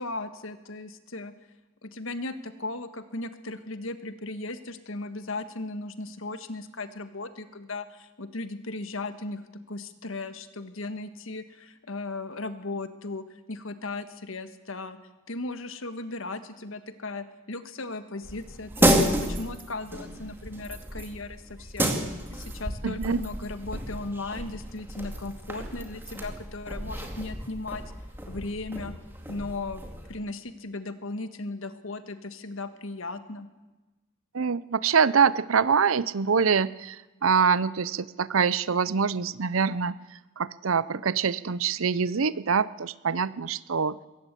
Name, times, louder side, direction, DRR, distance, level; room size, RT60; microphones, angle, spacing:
voice 1, 0.0-1.3 1.8-9.4 9.7-15.0 15.3-21.9 22.3-27.8 28.3-28.9 29.3-29.8 30.1-33.5, left 2 dB, 70° left, 10 dB, 1.5 m, -37 dB
sound 1, 18.2-30.2, right 1 dB, 10° right, 2.3 m, -31 dB
voice 2, 22.8-23.2 34.3-40.0 40.4-44.1, right 6 dB, 75° right, 18 dB, 0.7 m, -25 dB
22.0 x 17.5 x 8.3 m, 1.1 s
head